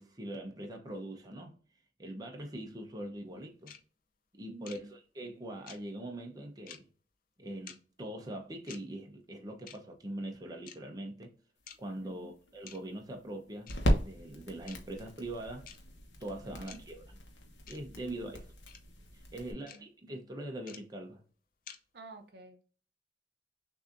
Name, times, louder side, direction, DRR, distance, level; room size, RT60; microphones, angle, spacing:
voice 1, 0.0-1.5 2.0-3.7 4.3-6.9 7.4-11.3 11.8-13.7 14.0-15.7 16.2-17.2 17.7-18.5 19.3-21.2, right 1 dB, 20° right, 0.8 m, -42 dB
sound 1, 3.7-3.8 4.7-4.8 5.7-5.8 6.7-6.8 7.7-7.8 8.7-8.8 9.7-9.8 10.7-10.8 11.7-11.8 12.7-12.8 13.7-13.8 14.7-14.8 15.7-15.8 16.7-16.8 17.7-17.8 18.7-18.8 19.7-19.8 20.7-20.8 21.7-21.8, left 8 dB, 50° left, 0.6 m, -48 dB
voice 2, 4.5-4.9 12.0-12.3 16.4-16.7 18.0-18.4 19.4-19.8 21.9-22.6, right 2 dB, 65° right, 0.6 m, -51 dB
sound 2, 11.6-19.5, equal, 80° left, 1.0 m, -37 dB
6.2 x 2.7 x 2.5 m
head